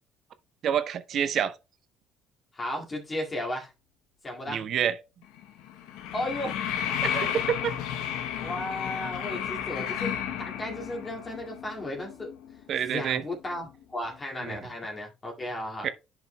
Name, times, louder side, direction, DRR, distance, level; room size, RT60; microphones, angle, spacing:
voice 1, 0.6-1.5 4.5-5.0 7.0-7.7 12.7-13.2 14.4-14.6 15.8-15.9, right 9 dB, 60° right, 0.7 m, -27 dB
voice 2, 2.5-3.7 4.2-4.7 6.1-6.6 8.4-12.3 12.9-15.9, left 1 dB, 30° left, 2.2 m, -35 dB
sound 1, 5.2-13.6 13.8-13.9, left 9 dB, 80° left, 0.8 m, -33 dB
10.5 x 5.1 x 2.2 m
supercardioid pair, 80°, 0 cm